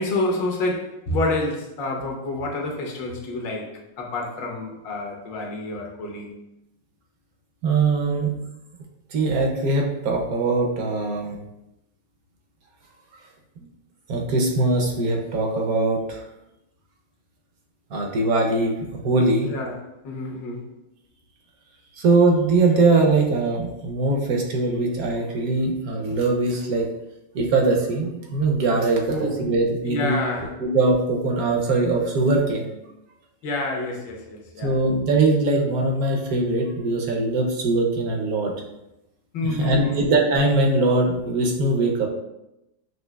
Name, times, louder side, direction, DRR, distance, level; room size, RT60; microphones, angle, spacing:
voice 1, 0.0-3.7 4.0-6.3 19.5-19.8 20.0-20.7 29.1-29.4 29.9-30.5 33.4-34.7 39.3-40.0, left 2 dB, 80° left, 0 dB, 1.5 m, -28 dB
voice 2, 7.6-8.3 9.1-11.4 14.1-16.2 17.9-19.5 22.0-26.8 27.3-30.2 30.6-32.7 34.6-38.5 39.4-42.1, right 3 dB, 70° right, 1 dB, 0.9 m, -21 dB
6.1 x 2.8 x 2.2 m, 0.89 s
omnidirectional pair, 2.0 m